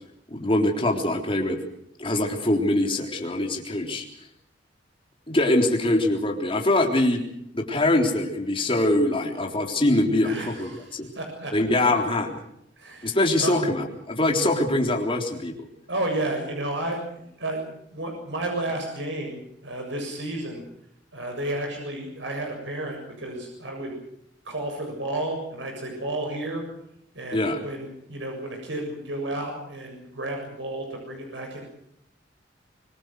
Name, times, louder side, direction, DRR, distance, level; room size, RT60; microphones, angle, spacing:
voice 1, 0.3-1.6 2.0-4.1 5.3-7.2 7.5-11.1 11.5-12.4 13.0-15.5 27.3-27.6, left 1 dB, 30° left, 2 dB, 3.7 m, -23 dB
voice 2, 10.2-11.5 12.8-13.6 15.9-20.6 21.1-24.0 24.4-26.6 27.1-31.6, right 1 dB, 75° right, 2 dB, 7.2 m, -32 dB
25.0 x 21.5 x 6.4 m, 0.74 s
head